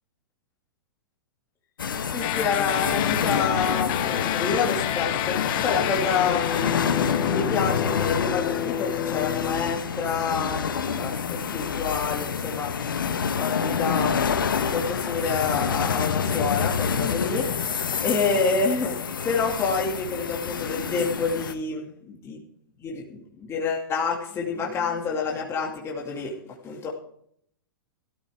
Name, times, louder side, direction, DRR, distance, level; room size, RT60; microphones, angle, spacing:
sound 1, 1.8-21.5, left 6 dB, 75° left, 1.4 m, -28 dB
voice 1, 2.1-5.4 5.6-6.5 7.2-12.7 13.4-14.3 14.6-17.5 18.0-19.0 19.2-22.4 22.8-26.9, left 5 dB, 25° left, -2 dB, 2.5 m, -28 dB
sound 2, 2.2-9.8, left 14 dB, 40° left, 0.8 m, -29 dB
17.5 x 13.5 x 3.6 m, 0.67 s
figure-of-eight pair, 110°, 11 cm